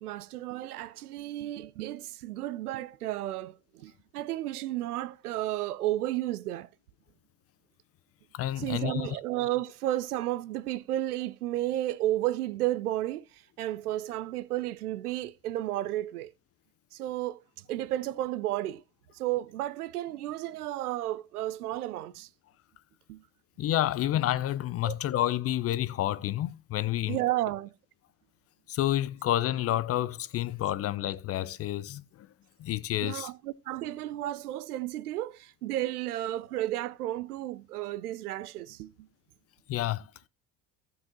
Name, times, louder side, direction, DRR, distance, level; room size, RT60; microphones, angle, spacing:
voice 1, 0.0-6.7 8.6-13.2 13.6-16.3 16.9-17.4 17.7-18.8 19.2-22.3 23.1-23.2 24.8-25.0 27.1-27.7 33.0-39.1, right 14 dB, 75° right, 0.6 m, -32 dB
voice 2, 8.3-9.2 23.6-27.2 28.7-32.3 32.6-33.3 39.7-40.0, left 13 dB, 30° left, 0.5 m, -29 dB
13.5 x 7.4 x 2.9 m
figure-of-eight pair, 65°, 46 cm